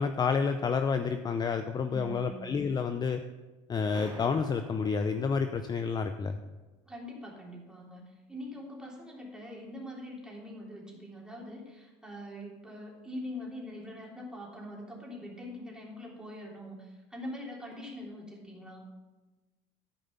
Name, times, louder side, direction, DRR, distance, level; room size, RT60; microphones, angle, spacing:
voice 1, 0.0-3.2 3.7-6.4, left 5 dB, 25° left, 8 dB, 0.6 m, -29 dB
voice 2, 1.9-2.4 6.8-18.8, left 1 dB, 5° right, -3 dB, 3.3 m, -43 dB
sound 1, 3.9-5.9, right 2 dB, 25° right, 2.9 m, -49 dB
13.0 x 5.0 x 5.6 m, 1.2 s
supercardioid pair, 95°, 15 cm